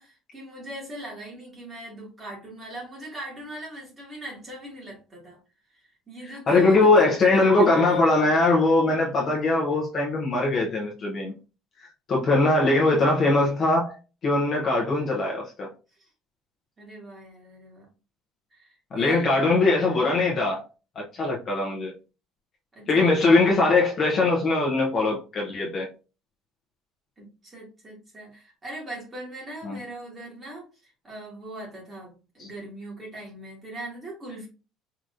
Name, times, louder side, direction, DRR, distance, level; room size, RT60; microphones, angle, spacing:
voice 1, 0.0-5.4 6.1-6.9 7.2-8.0 12.9-13.0 16.8-17.9 18.5-19.2 22.7-23.2 27.2-34.5, right 1 dB, 15° right, 1.9 m, -40 dB
voice 2, 6.5-11.3 12.1-14.0 14.2-15.7 18.9-20.6 21.1-21.9 22.9-25.9 29.6-29.8, left 2 dB, 30° left, 0.8 m, -21 dB
4.8 x 3.0 x 2.5 m
cardioid pair, 170°, 0 cm